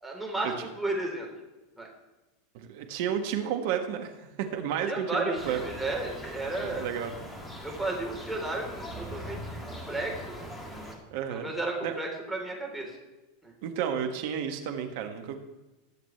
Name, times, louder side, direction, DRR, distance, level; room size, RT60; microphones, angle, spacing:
voice 1, 0.0-1.3 1.8-1.9 4.9-6.9 7.6-10.4 11.3-13.0 13.4-13.5, right 2 dB, 5° right, -2 dB, 3.9 m, -33 dB
voice 2, 2.5-5.6 6.6-7.1 11.1-11.5 11.8-11.9 13.6-15.4, right 8 dB, 55° right, 5 dB, 1.6 m, -32 dB
sound 1, 5.4-11.0, equal, 15° left, 2.5 m, -41 dB
20.5 x 7.7 x 3.4 m, 1.1 s
figure-of-eight pair, 85°, 0 cm